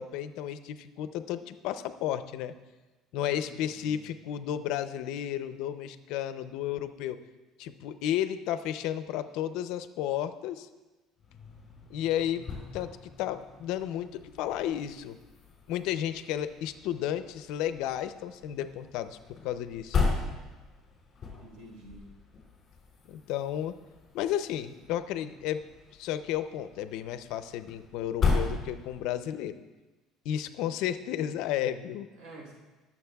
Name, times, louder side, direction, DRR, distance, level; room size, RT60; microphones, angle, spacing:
voice 1, 0.0-2.5 3.1-7.2 7.6-10.7 11.9-12.5 12.7-12.9 13.2-15.2 15.7-19.2 19.4-20.0 23.1-23.7 24.1-25.6 25.9-29.5 30.2-32.1, left 11 dB, 75° left, 12 dB, 0.5 m, -32 dB
voice 2, 3.2-4.0 21.4-22.1 32.2-32.5, right 2 dB, 65° right, 0 dB, 3.7 m, -49 dB
sound 1, 11.2-29.3, left 4 dB, 30° left, 3.3 m, -37 dB
21.5 x 7.2 x 2.3 m, 1.2 s
cardioid pair, 140°, 0 cm